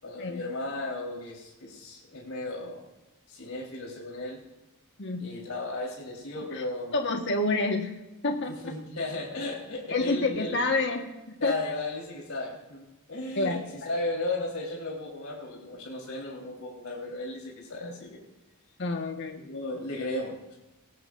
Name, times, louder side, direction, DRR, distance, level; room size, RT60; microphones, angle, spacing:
voice 1, 0.0-2.8 3.3-4.4 5.2-6.9 8.5-10.6 11.4-18.2 19.4-20.5, left 2 dB, 75° left, -3 dB, 4.1 m, -35 dB
voice 2, 6.9-8.0 8.2-8.7 9.9-11.6 13.4-13.9 17.8-17.9 18.8-19.4, left 2 dB, 55° left, 3 dB, 1.5 m, -29 dB
19.0 x 18.0 x 2.6 m, 0.99 s
head